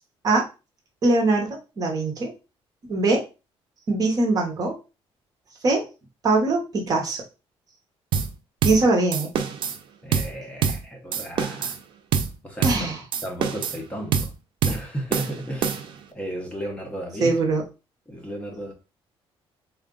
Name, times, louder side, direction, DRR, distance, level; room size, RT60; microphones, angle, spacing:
voice 1, 1.0-2.3 2.9-3.2 3.9-4.7 5.6-5.8 6.2-7.2 8.6-9.3 12.6-13.0 17.2-17.6, right 2 dB, 35° right, 1 dB, 0.9 m, -22 dB
sound 1, 8.1-8.3 8.6-8.8 9.1-9.8 10.1-10.3 10.6-10.8 11.1-11.8 12.1-12.3 12.6-12.8 13.1-13.8 14.1-14.3 14.6-14.8 15.1-16.0, right 7 dB, 55° right, 0.5 m, -25 dB
voice 2, 10.0-11.7 12.4-14.3 14.7-17.4 18.1-18.7, right 1 dB, 10° left, 0 dB, 0.8 m, -34 dB
3.7 x 2.3 x 3.7 m, 0.29 s
cardioid pair, 165°, 10 cm